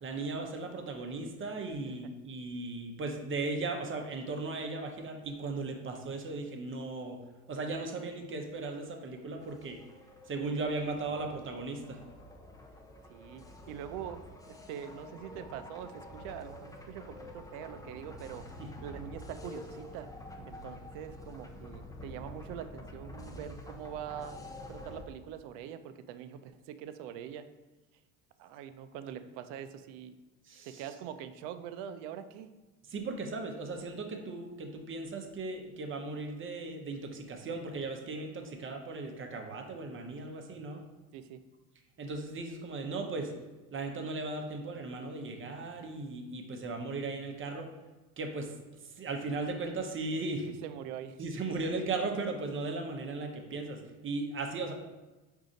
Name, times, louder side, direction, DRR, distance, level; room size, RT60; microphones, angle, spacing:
voice 1, 0.0-7.2 7.5-9.8 10.3-12.0 18.6-18.7 30.5-30.8 32.9-40.8 42.0-43.3 43.7-47.7 48.2-48.5 48.8-50.5 51.2-54.7, right 3 dB, 30° right, 3 dB, 0.8 m, -37 dB
sound 1, 8.9-25.0, left 1 dB, 10° left, 0.5 m, -48 dB
voice 2, 13.1-18.4 18.8-20.1 20.5-24.4 24.7-27.5 28.4-30.1 30.6-32.5 41.1-41.4 50.6-51.2, right 9 dB, 60° right, 10 dB, 0.5 m, -43 dB
4.9 x 2.7 x 3.8 m, 1.2 s
hypercardioid pair, 80°, 44 cm